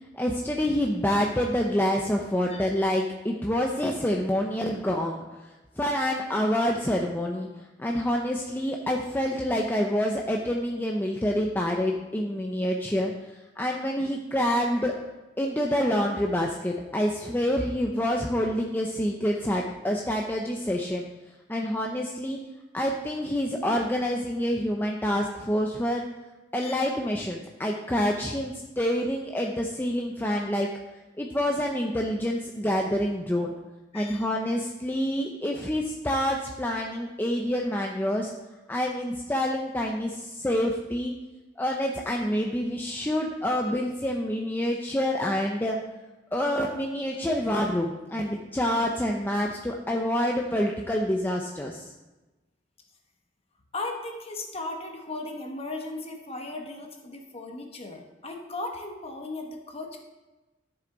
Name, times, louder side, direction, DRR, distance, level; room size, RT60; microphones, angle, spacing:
voice 1, 0.1-7.5 7.8-13.1 13.6-15.0 15.4-21.0 21.5-22.4 22.7-26.0 26.5-30.7 31.2-33.5 33.9-38.3 38.7-41.1 41.6-45.8 46.3-51.9, equal, 10° left, 0 dB, 0.6 m, -27 dB
voice 2, 33.9-34.2 53.7-60.0, left 2 dB, 35° left, 3 dB, 1.3 m, -37 dB
12.5 x 7.0 x 3.9 m, 1.1 s
head